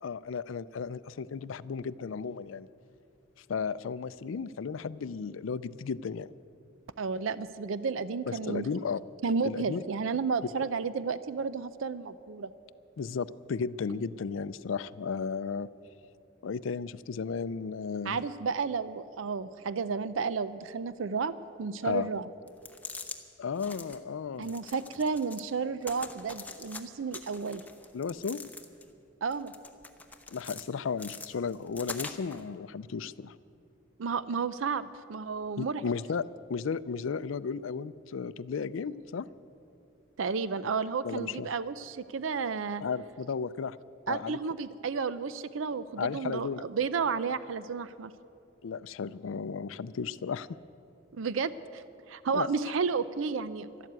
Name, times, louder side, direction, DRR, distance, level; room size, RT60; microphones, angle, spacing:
voice 1, 0.0-2.7 3.5-6.3 8.3-9.0 9.4-9.8 13.0-15.7 16.4-18.2 21.8-22.1 23.4-24.5 27.9-28.4 30.3-33.4 35.6-39.3 41.0-41.5 42.8-43.8 44.1-44.4 46.0-46.6 48.6-50.6 52.3-52.5, left 5 dB, 80° left, 17 dB, 0.4 m, -34 dB
voice 2, 7.0-8.7 9.2-12.5 18.1-21.3 21.6-22.3 24.4-27.6 29.2-29.5 34.0-35.8 40.2-42.8 44.1-48.1 51.1-53.7, right 5 dB, 80° right, 15 dB, 0.5 m, -32 dB
sound 1, 22.5-23.2 23.5-24.0 24.4-25.5 25.8-26.8 27.1-28.9 29.3-30.6 31.0-32.4, left 3 dB, 10° left, 0.8 m, -43 dB
12.5 x 12.0 x 9.4 m, 2.6 s
head